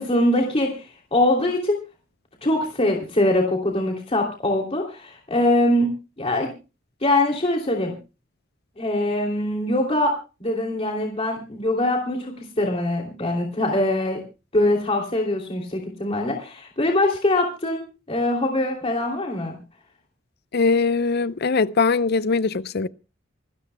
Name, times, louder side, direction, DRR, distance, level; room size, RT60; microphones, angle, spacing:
voice 1, 0.0-1.8 2.4-5.9 6.2-6.5 7.0-7.9 8.8-10.1 10.4-14.2 14.5-17.8 18.1-19.6, left 1 dB, 30° left, 2.9 m, -23 dB
voice 2, 20.5-22.9, left 4 dB, 55° left, 0.6 m, -21 dB
27.5 x 13.0 x 2.2 m
head